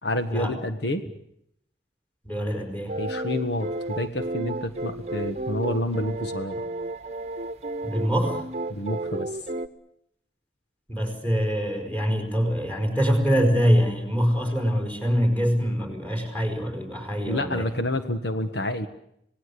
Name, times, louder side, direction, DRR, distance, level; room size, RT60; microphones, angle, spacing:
voice 1, 0.0-1.0 3.0-6.5 8.7-9.3 17.3-18.9, left 1 dB, 75° left, 8 dB, 1.5 m, -28 dB
voice 2, 2.2-3.0 7.8-8.4 10.9-17.7, equal, 10° left, 6 dB, 4.9 m, -24 dB
sound 1, 2.9-9.7, right 2 dB, 40° right, 1.1 m, -32 dB
27.0 x 18.5 x 8.5 m, 0.74 s
head